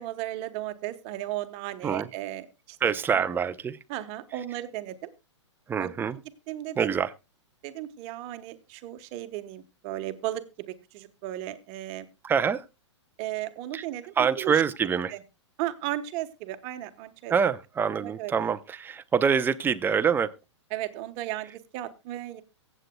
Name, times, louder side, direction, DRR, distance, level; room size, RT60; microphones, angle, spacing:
voice 1, 0.0-2.8 3.1-3.2 3.9-5.1 5.8-5.9 6.5-6.9 7.6-12.0 13.2-14.5 15.1-15.2 15.6-17.3 18.0-18.3 20.7-22.4, right 14 dB, 40° right, 1.1 m, -35 dB
voice 2, 2.8-3.8 5.7-6.2 6.8-7.1 12.2-12.6 13.7-13.8 14.2-15.1 17.3-20.3, right 6 dB, 15° right, 0.6 m, -25 dB
23.5 x 8.2 x 2.3 m
hypercardioid pair, 120°, 15 cm